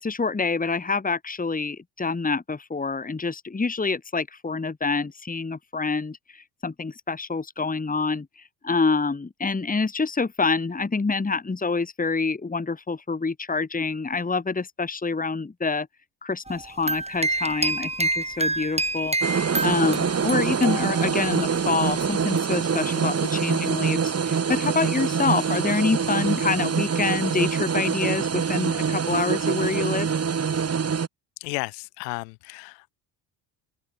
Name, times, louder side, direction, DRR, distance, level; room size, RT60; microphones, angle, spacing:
voice 1, 0.0-8.3 8.6-15.9 16.2-30.1, left 4 dB, 15° left, 2.2 m, -26 dB
sound 1, 16.5-21.4, right 2 dB, 15° right, 6.2 m, -28 dB
sound 2, 19.2-31.1, right 6 dB, 30° right, 2.2 m, -25 dB
voice 2, 31.4-32.9, left 32 dB, 85° left, 5.5 m, -33 dB
open air
hypercardioid pair, 65°, 48 cm